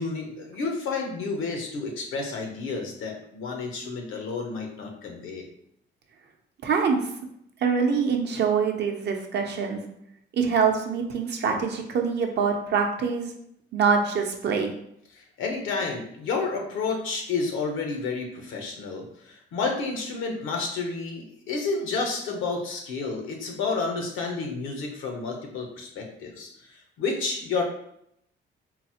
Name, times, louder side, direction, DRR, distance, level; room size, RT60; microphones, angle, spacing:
voice 1, 0.0-5.5 15.1-27.6, left 4 dB, 85° left, 2 dB, 0.8 m, -30 dB
voice 2, 6.6-7.0 7.6-9.9 10.3-13.3 13.7-14.7, right 6 dB, 60° right, 3 dB, 0.6 m, -24 dB
3.8 x 2.0 x 2.8 m, 0.73 s
cardioid pair, 90°, 20 cm